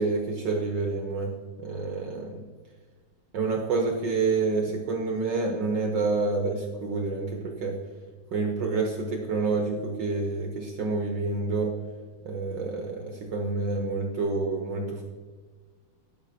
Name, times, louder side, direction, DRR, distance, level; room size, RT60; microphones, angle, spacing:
voice 1, 0.0-1.3 1.6-2.4 3.3-7.7 8.3-11.7 12.2-15.0, right 3 dB, 65° right, 1 dB, 1.4 m, -28 dB
11.5 x 5.8 x 2.7 m, 1.5 s
omnidirectional pair, 2.4 m